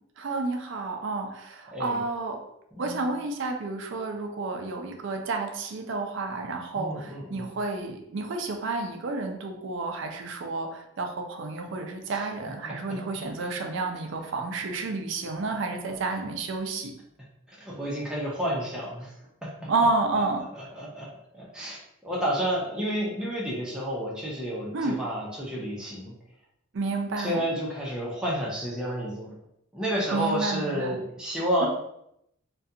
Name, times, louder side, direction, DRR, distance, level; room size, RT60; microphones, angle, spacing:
voice 1, 0.2-2.4 2.8-16.9 19.7-20.4 24.7-25.0 26.7-27.4 30.1-31.0 31.6-31.7, right 3 dB, 60° right, 4 dB, 0.4 m, -30 dB
voice 2, 2.7-3.1 6.7-7.5 12.1-13.2 17.5-19.1 19.4-19.7 20.5-21.1 21.3-26.1 27.2-29.3 29.7-31.7, equal, 5° right, -5 dB, 0.5 m, -31 dB
2.4 x 2.2 x 2.7 m, 0.78 s
head